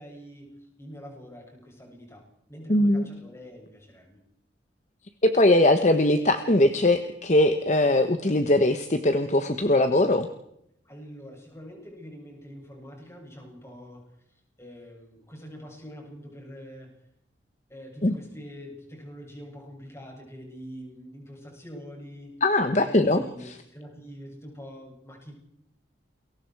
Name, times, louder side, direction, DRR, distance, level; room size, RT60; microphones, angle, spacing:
voice 1, 0.0-4.2 10.8-14.0 14.3-16.9 17.7-22.4 22.8-25.3, equal, 15° left, 0 dB, 7.8 m, -44 dB
voice 2, 2.7-3.1 5.2-10.3 18.0-18.1 22.4-23.2, left 1 dB, 40° left, 8 dB, 1.1 m, -21 dB
29.5 x 22.0 x 4.7 m, 0.76 s
head